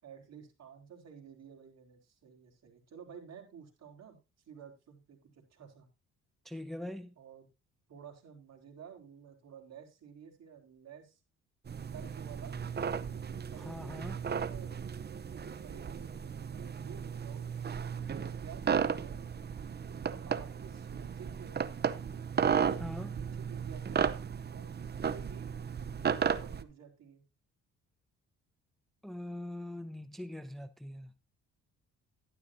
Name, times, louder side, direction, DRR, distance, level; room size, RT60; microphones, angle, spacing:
voice 1, 0.0-4.2 4.4-5.9 7.2-7.5 7.9-11.2 11.9-12.6 13.5-19.2 20.0-21.7 23.0-24.2 24.5-25.5 26.1-27.2, right 7 dB, 60° right, 4.3 m, -52 dB
voice 2, 6.4-7.1 13.6-14.2 22.8-23.2 29.0-31.1, left 1 dB, ahead, 0.7 m, -42 dB
sound 1, 11.7-26.6, right 7 dB, 35° right, 0.8 m, -35 dB
12.0 x 11.5 x 2.7 m
cardioid pair, 90°, 30 cm